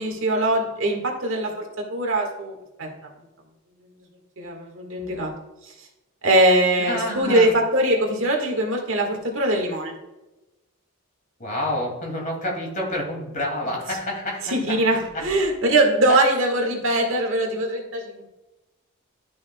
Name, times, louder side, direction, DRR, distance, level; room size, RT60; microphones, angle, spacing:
voice 1, 0.0-1.6 1.9-2.9 4.4-5.3 6.2-9.9 14.5-18.3, right 1 dB, 60° right, 1 dB, 1.7 m, -22 dB
voice 2, 6.8-7.5 11.4-14.8 15.1-15.2 16.1-16.2, left 1 dB, 35° left, -1 dB, 2.4 m, -28 dB
11.5 x 6.2 x 2.3 m, 1.0 s
head